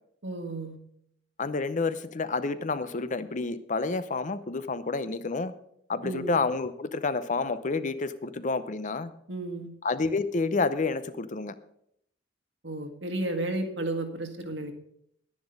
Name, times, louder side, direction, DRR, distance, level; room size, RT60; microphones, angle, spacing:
voice 1, 0.2-0.8 6.0-6.3 9.3-9.7 12.6-14.7, right 2 dB, 85° right, 5 dB, 1.8 m, -33 dB
voice 2, 1.4-5.5 5.9-9.1 9.8-11.5, left 3 dB, 45° left, 13 dB, 0.7 m, -29 dB
10.5 x 10.5 x 5.2 m, 0.72 s
head